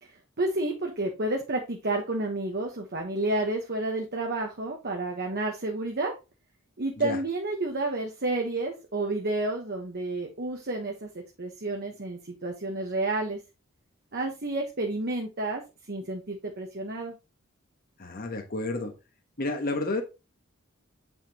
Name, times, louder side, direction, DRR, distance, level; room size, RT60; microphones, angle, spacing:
voice 1, 0.4-6.1 6.8-11.1 11.4-13.4 14.1-15.6 15.9-17.1, right 2 dB, 50° right, 2 dB, 1.1 m, -30 dB
voice 2, 18.0-18.9 19.4-20.0, left 2 dB, 45° left, 4 dB, 1.2 m, -30 dB
8.2 x 5.6 x 2.9 m, 0.28 s
head